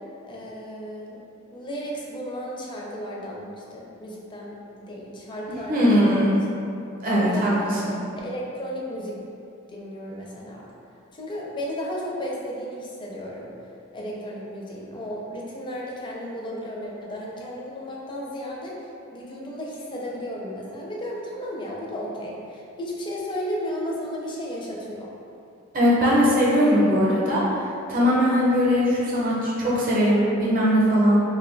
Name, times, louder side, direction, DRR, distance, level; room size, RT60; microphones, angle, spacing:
voice 1, 0.2-1.2 1.5-6.1 7.2-9.2 9.7-10.7 11.1-13.5 13.9-18.7 19.1-25.1, equal, 25° left, -3 dB, 0.4 m, -34 dB
voice 2, 5.7-6.4 7.0-7.9 25.7-27.4 27.9-31.2, equal, 45° right, -6 dB, 0.7 m, -20 dB
2.5 x 2.2 x 3.7 m, 2.6 s
head